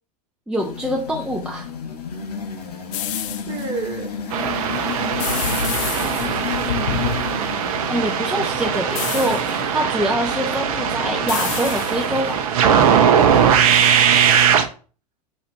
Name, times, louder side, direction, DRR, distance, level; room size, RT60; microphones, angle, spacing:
voice 1, 0.5-1.7 7.9-12.5, equal, 5° right, 0 dB, 0.5 m, -25 dB
sound 1, 0.6-12.4, left 6 dB, 70° left, 0.8 m, -31 dB
sound 2, 2.9-3.7 5.2-6.6 9.0-9.7 11.3-12.3, left 12 dB, 50° left, 0.5 m, -30 dB
voice 2, 3.5-4.1 5.2-7.6, right 5 dB, 35° right, 3 dB, 1.2 m, -34 dB
sound 3, 4.3-14.6, right 8 dB, 60° right, 0.6 m, -20 dB
4.3 x 2.5 x 4.3 m, 0.39 s
figure-of-eight pair, 90°, 21 cm